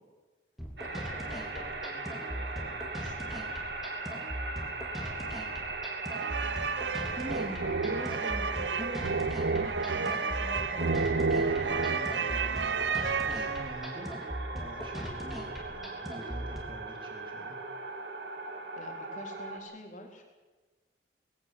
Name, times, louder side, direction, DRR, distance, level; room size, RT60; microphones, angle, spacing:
sound 1, 0.6-16.6, equal, ahead, 3.5 m, -40 dB
voice 1, 0.8-3.5 6.9-7.5 7.8-8.1 18.7-20.2, left 1 dB, 45° left, 2 dB, 4.1 m, -49 dB
sound 2, 0.8-19.6, right 3 dB, 70° right, 2.5 m, -38 dB
sound 3, 6.1-13.9, right 4 dB, 85° right, 0.9 m, -31 dB
voice 2, 7.2-17.6, equal, 30° right, 0 dB, 3.4 m, -44 dB
21.0 x 16.5 x 7.8 m, 1.2 s
head